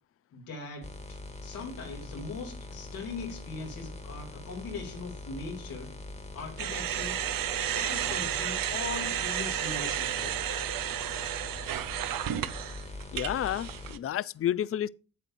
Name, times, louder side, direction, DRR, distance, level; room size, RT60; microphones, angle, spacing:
voice 1, 0.3-5.9 6.3-7.2 7.7-10.4, left 4 dB, 90° left, 2.7 m, -40 dB
sound 1, 0.8-13.9, left 2 dB, 20° left, 1.4 m, -43 dB
sound 2, 6.6-14.0, right 11 dB, 75° right, 0.7 m, -32 dB
voice 2, 13.1-14.9, left 11 dB, 40° left, 0.4 m, -30 dB
8.6 x 8.1 x 2.6 m
supercardioid pair, 60°, 34 cm